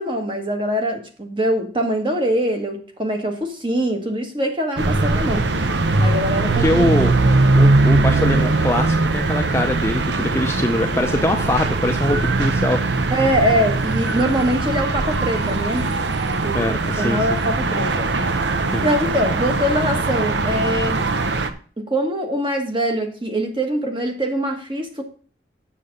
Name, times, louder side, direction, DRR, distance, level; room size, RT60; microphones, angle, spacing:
voice 1, 0.0-5.5 6.0-7.2 13.1-15.9 16.4-18.1 18.8-21.1 21.8-25.0, equal, 25° right, 4 dB, 1.4 m, -23 dB
sound 1, 4.8-21.5, right 3 dB, 75° right, 0.8 m, -20 dB
voice 2, 6.6-7.1 7.5-12.8 16.5-17.3 18.7-18.9, left 1 dB, 15° left, 4 dB, 0.6 m, -22 dB
7.6 x 7.0 x 5.2 m, 0.42 s
head